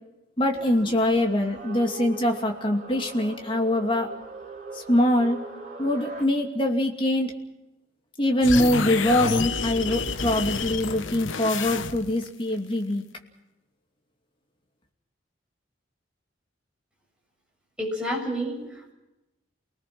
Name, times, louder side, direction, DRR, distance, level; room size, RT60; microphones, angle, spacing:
voice 1, 0.4-4.1 4.7-5.4 5.8-7.3 8.2-13.0, left 1 dB, 25° left, 2 dB, 2.6 m, -23 dB
sound 1, 0.5-6.2, right 2 dB, 40° right, 3.8 m, -41 dB
sound 2, 8.4-12.3, left 5 dB, 80° left, 1.0 m, -29 dB
voice 2, 17.8-18.9, equal, 5° right, -2 dB, 7.1 m, -30 dB
29.5 x 19.5 x 6.2 m, 0.97 s
head